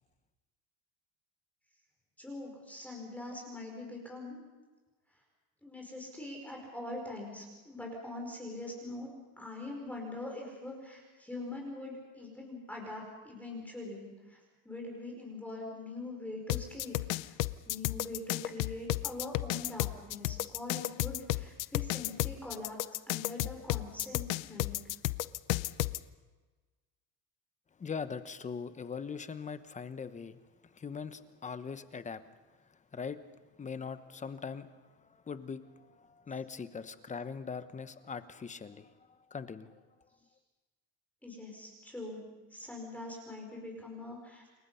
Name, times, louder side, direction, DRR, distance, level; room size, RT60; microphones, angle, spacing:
voice 1, 2.2-4.4 5.6-14.4 14.6-17.0 17.2-17.4 17.6-22.8 23.1-24.8 41.2-42.2 42.5-44.5, left 2 dB, 5° left, -1 dB, 5.1 m, -43 dB
sound 1, 16.5-26.0, left 20 dB, 90° left, 0.8 m, -32 dB
voice 2, 27.8-32.2 32.5-33.2 33.6-39.8, left 5 dB, 20° left, 12 dB, 1.0 m, -41 dB
28.5 x 22.0 x 5.7 m, 1.3 s
cardioid pair, 140°, 37 cm